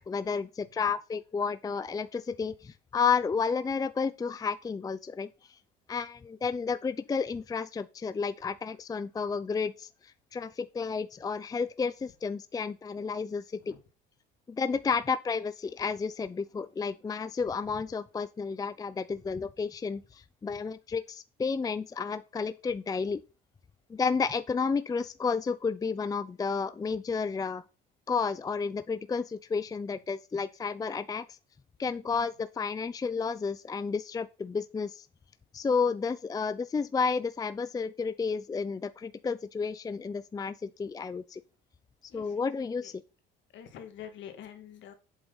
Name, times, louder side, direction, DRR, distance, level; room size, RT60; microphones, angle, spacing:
voice 1, 0.1-5.3 5.9-9.9 10.3-13.7 14.5-23.2 23.9-27.6 28.1-31.2 31.8-35.1 35.5-41.4 42.1-43.0, left 5 dB, 20° left, 0.5 m, -31 dB
voice 2, 42.1-42.9 43.5-44.9, left 9 dB, 65° left, 2.1 m, -47 dB
7.9 x 7.8 x 4.0 m
cardioid pair, 105°, 21 cm